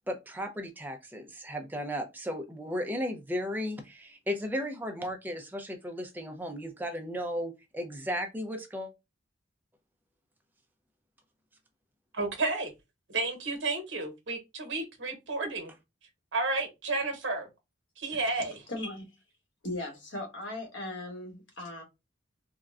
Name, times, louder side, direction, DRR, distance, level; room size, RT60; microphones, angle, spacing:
voice 1, 0.1-8.9, equal, 10° right, 0.5 m, -35 dB
voice 2, 12.1-12.7 13.1-15.7 16.3-17.5 18.0-18.6, right 3 dB, 75° right, 1.0 m, -31 dB
voice 3, 18.1-19.2 19.6-21.8, left 1 dB, 75° left, 1.2 m, -38 dB
3.6 x 2.1 x 2.4 m
head